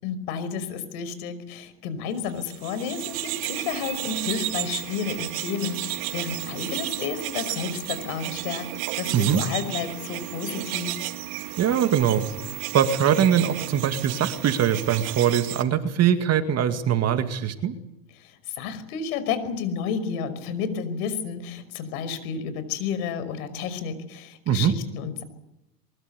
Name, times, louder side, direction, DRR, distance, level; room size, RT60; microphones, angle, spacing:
voice 1, 0.0-8.7 9.0-11.0 18.2-25.2, left 6 dB, 65° left, 12 dB, 5.6 m, -31 dB
sound 1, 2.4-15.6, right 18 dB, 60° right, 2.4 m, -33 dB
voice 2, 11.6-12.3 12.7-17.7 24.5-24.8, right 9 dB, 30° right, 8 dB, 2.3 m, -22 dB
23.5 x 23.0 x 8.3 m, 0.85 s
supercardioid pair, 120°, 47 cm